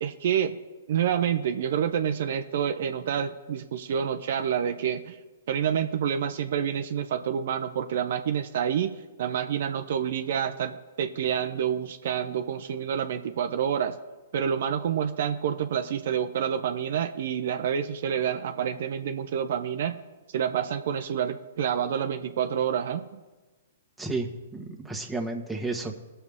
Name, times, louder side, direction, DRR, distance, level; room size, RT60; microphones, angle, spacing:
voice 1, 0.0-0.6 0.9-5.2 5.5-14.0 14.3-20.0 20.3-23.2, right 8 dB, 60° right, 8 dB, 0.6 m, -28 dB
voice 2, 24.0-26.0, right 3 dB, 5° right, 0 dB, 1.4 m, -32 dB
19.0 x 6.7 x 3.6 m, 1.2 s
hypercardioid pair, 120°, 0 cm